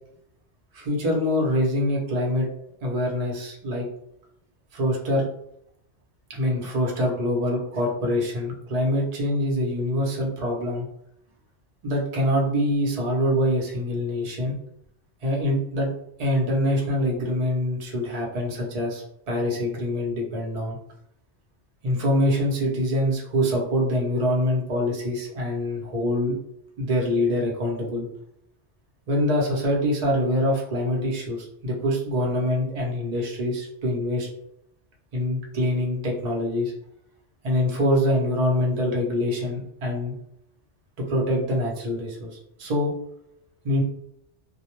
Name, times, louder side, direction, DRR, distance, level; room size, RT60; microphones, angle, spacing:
voice 1, 0.7-2.5 2.8-3.9 4.7-5.3 6.3-10.9 11.8-14.6 15.2-15.9 16.2-20.8 21.8-26.4 26.8-28.1 29.1-34.3 35.1-36.7 37.4-40.1 41.0-42.9 43.6-43.8, left 1 dB, 40° right, -2 dB, 0.6 m, -25 dB
2.1 x 2.0 x 2.9 m, 0.76 s
omnidirectional pair, 1.2 m